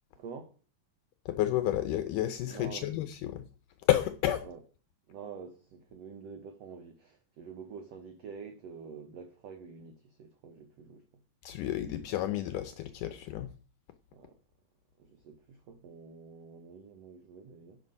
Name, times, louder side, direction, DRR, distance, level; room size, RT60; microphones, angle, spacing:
voice 1, 0.2-0.5 2.5-2.9 4.4-4.6 5.1-11.0 14.1-14.4 15.0-17.8, right 5 dB, 90° right, 1.4 m, -47 dB
voice 2, 1.3-3.4 3.9-4.5 11.4-13.5, left 13 dB, 80° left, 1.9 m, -30 dB
11.0 x 6.3 x 5.4 m
omnidirectional pair, 4.4 m